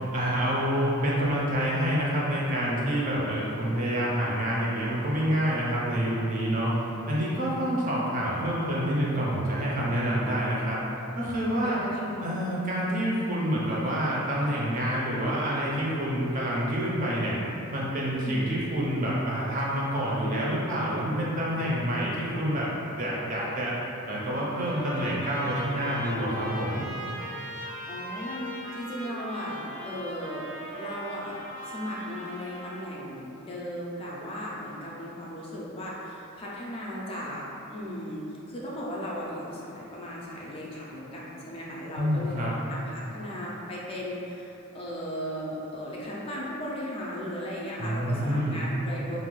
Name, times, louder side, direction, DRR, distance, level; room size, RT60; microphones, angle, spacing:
voice 1, 0.1-6.7 7.1-10.8 11.1-11.8 12.2-17.4 17.7-22.7 23.0-23.7 24.1-26.8 42.0-42.5 47.8-48.6, equal, 40° right, -6 dB, 0.5 m, -27 dB
voice 2, 11.6-12.5 18.1-18.5 27.9-30.5 30.8-31.4 31.6-38.2 38.5-49.2, equal, 25° left, -5 dB, 0.3 m, -36 dB
Trumpet, 24.1-33.0, equal, 80° right, 1.2 m, -39 dB
2.5 x 2.2 x 3.0 m, 2.9 s
head